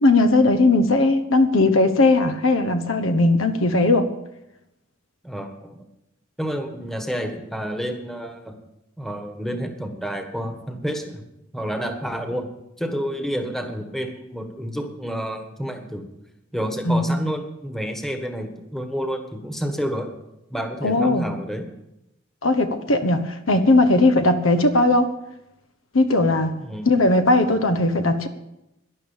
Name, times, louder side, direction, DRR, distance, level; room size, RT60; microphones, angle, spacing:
voice 1, 0.0-4.1 16.9-17.2 20.8-21.3 22.4-25.1 25.9-26.5 26.8-28.3, left 2 dB, 75° left, 8 dB, 1.2 m, -18 dB
voice 2, 5.2-5.8 6.4-8.6 9.0-11.2 11.5-12.5 12.8-16.0 16.5-20.1 20.5-21.7 26.6-26.9, equal, ahead, 5 dB, 1.6 m, -29 dB
12.5 x 11.0 x 7.2 m, 0.89 s
head